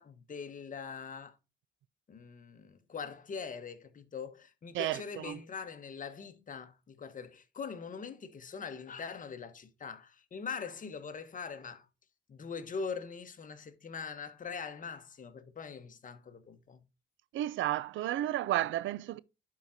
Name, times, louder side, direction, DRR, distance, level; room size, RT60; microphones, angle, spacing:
voice 1, 0.0-1.4 2.1-11.9 12.3-16.8, left 5 dB, 40° left, 1.2 m, -42 dB
voice 2, 4.7-5.4 17.3-19.2, right 14 dB, 80° right, 0.5 m, -32 dB
11.5 x 4.9 x 2.7 m
cardioid pair, 90°, 20 cm